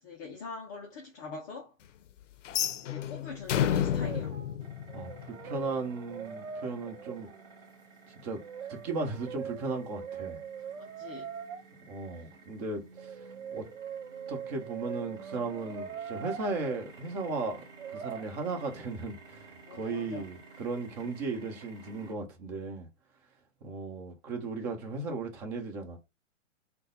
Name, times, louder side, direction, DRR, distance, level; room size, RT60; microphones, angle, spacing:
voice 1, 0.0-1.8 2.8-4.4 10.8-11.3 12.1-12.3 19.6-20.2, left 4 dB, 15° left, 0.4 m, -43 dB
sound 1, 2.4-5.5, left 10 dB, 70° left, 0.6 m, -30 dB
Brass instrument, 3.9-4.6 4.9-7.4 8.4-11.6 13.0-16.8 17.8-18.2, right 7 dB, 70° right, 0.8 m, -42 dB
sound 2, 4.6-22.1, right 4 dB, 10° right, 2.1 m, -53 dB
voice 2, 4.9-7.3 8.2-8.4 8.7-10.4 11.9-13.3 13.5-13.7 14.3-17.7 17.9-22.9 23.6-26.0, right 3 dB, 30° right, 1.2 m, -36 dB
3.7 x 2.3 x 3.9 m
hypercardioid pair, 130°, 39 cm